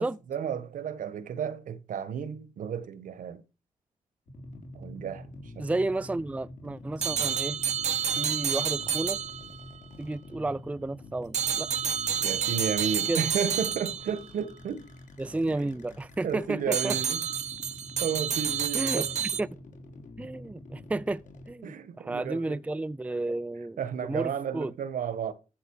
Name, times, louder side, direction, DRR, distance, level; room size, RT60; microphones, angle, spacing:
voice 1, 0.0-3.4 4.7-5.3 5.5-5.8 12.2-14.9 15.5-15.7 16.2-17.2 18.0-19.1 21.6-22.6 23.8-25.3, right 7 dB, 75° right, 1.5 m, -33 dB
sound 1, 4.3-21.5, left 1 dB, 70° left, 4.0 m, -46 dB
voice 2, 5.6-7.6 8.2-9.2 10.0-11.7 13.1-13.3 15.2-17.0 18.7-19.5 20.2-21.2 21.5-24.7, right 2 dB, 10° right, 0.4 m, -32 dB
sound 2, 7.0-9.8 11.3-14.3 16.7-19.4, right 8 dB, 55° right, 0.8 m, -29 dB
14.0 x 6.7 x 4.8 m
cardioid pair, 65°, 14 cm